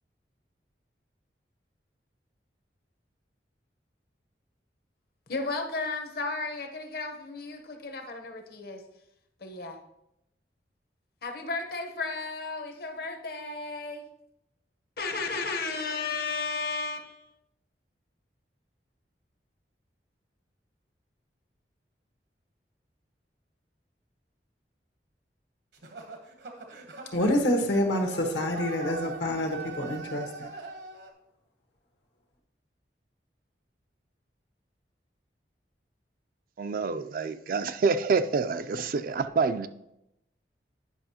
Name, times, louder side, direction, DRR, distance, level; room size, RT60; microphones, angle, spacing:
voice 1, 5.3-8.8 9.4-9.8 11.2-14.0 15.0-17.2, left 3 dB, 60° left, 5 dB, 0.9 m, -34 dB
sound 1, 25.7-31.1, right 3 dB, 70° right, 1.0 m, -41 dB
voice 2, 27.1-30.5, left 1 dB, 85° left, 2 dB, 1.2 m, -27 dB
voice 3, 36.6-39.7, right 4 dB, 50° right, 11 dB, 0.4 m, -27 dB
9.9 x 5.5 x 2.8 m, 0.84 s
head